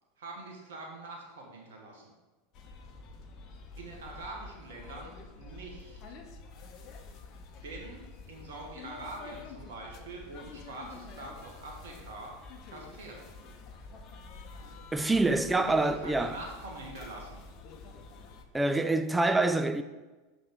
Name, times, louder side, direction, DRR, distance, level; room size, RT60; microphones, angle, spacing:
voice 1, 0.2-2.0 3.8-6.0 7.5-12.3 12.7-13.3 15.5-17.4, right 2 dB, 70° right, 1.3 m, -44 dB
sound 1, 2.5-18.5, left 4 dB, 45° left, 0.9 m, -48 dB
voice 2, 14.9-16.4 18.5-19.8, right 2 dB, 10° right, 0.4 m, -26 dB
5.8 x 5.1 x 5.1 m
hypercardioid pair, 90°, 0 cm